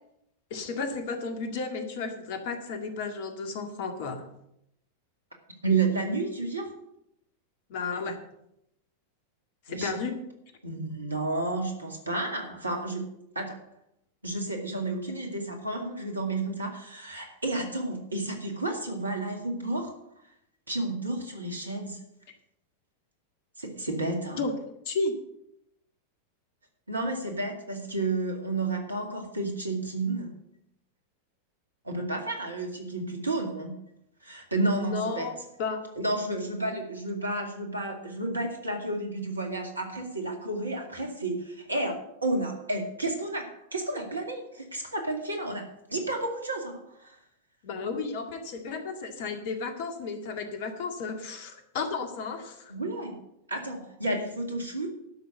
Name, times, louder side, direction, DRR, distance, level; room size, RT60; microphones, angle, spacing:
voice 1, 0.5-4.3 7.7-8.2 9.7-10.2 24.4-24.5 24.9-25.1 34.8-35.3 35.6-35.8 47.6-52.7, left 4 dB, 50° left, 6 dB, 2.0 m, -33 dB
voice 2, 5.6-6.7 9.7-10.0 10.6-13.0 13.4-13.6 14.2-19.9 20.7-22.0 23.6-24.5 26.9-30.4 31.8-33.8 34.2-35.3 36.0-45.6 45.9-47.2 52.7-53.2 53.5-54.9, right 2 dB, 80° right, 3 dB, 2.3 m, -31 dB
11.5 x 6.2 x 7.9 m, 0.79 s
figure-of-eight pair, 90°, 0 cm